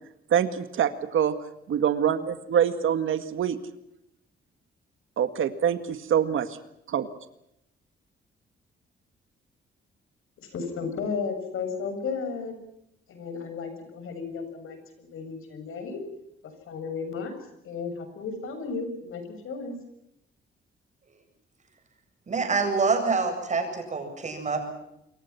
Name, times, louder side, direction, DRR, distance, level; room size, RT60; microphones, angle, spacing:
voice 1, 0.3-1.3 1.7-3.6 5.2-6.5 6.9-7.1, right 9 dB, 75° right, 10 dB, 1.9 m, -25 dB
voice 2, 10.4-12.5 13.1-16.0 16.7-17.3 17.6-19.7, left 5 dB, 80° left, 8 dB, 7.3 m, -34 dB
voice 3, 22.3-24.6, right 4 dB, 35° right, 4 dB, 7.8 m, -26 dB
28.0 x 23.5 x 5.9 m, 0.81 s
cardioid pair, 135°, 21 cm